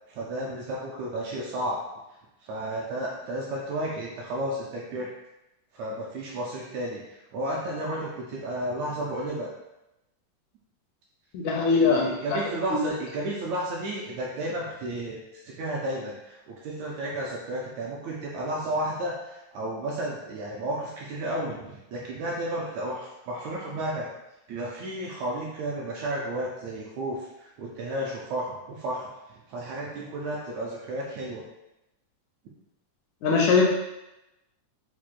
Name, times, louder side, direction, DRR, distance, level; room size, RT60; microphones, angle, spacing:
voice 1, 0.1-1.8 2.4-5.1 5.7-9.5 11.6-15.2 15.5-24.1 24.5-31.4, right 1 dB, 80° right, -4 dB, 1.6 m, -32 dB
voice 2, 11.3-12.4 12.7-12.8 33.2-33.7, left 4 dB, 80° left, -1 dB, 1.7 m, -22 dB
5.9 x 2.1 x 2.4 m, 0.94 s
omnidirectional pair, 3.5 m